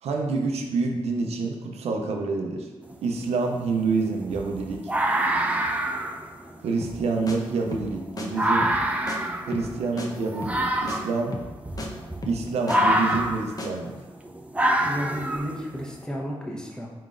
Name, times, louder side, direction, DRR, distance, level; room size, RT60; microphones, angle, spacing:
voice 1, 0.0-2.7 3.0-4.9 6.6-8.7 9.5-11.4 12.3-13.9, right 4 dB, 80° right, 2 dB, 0.5 m, -27 dB
sound 1, 2.8-2.9 3.4-15.9, right 1 dB, 15° right, 0.5 m, -27 dB
sound 2, 6.8-7.0 7.3-7.4 7.7-7.9 8.2-8.3 8.6-8.8 9.1-9.2 9.5-9.7 10.0-10.1 10.4-10.6 10.9-11.0 11.3-11.5 11.8-11.9 12.2-12.8 13.1-13.3 13.6-13.7, left 2 dB, 35° left, 0.7 m, -34 dB
voice 2, 14.8-16.9, equal, 5° left, -3 dB, 1.0 m, -32 dB
4.6 x 3.8 x 2.5 m, 1.2 s
cardioid pair, 55°, 11 cm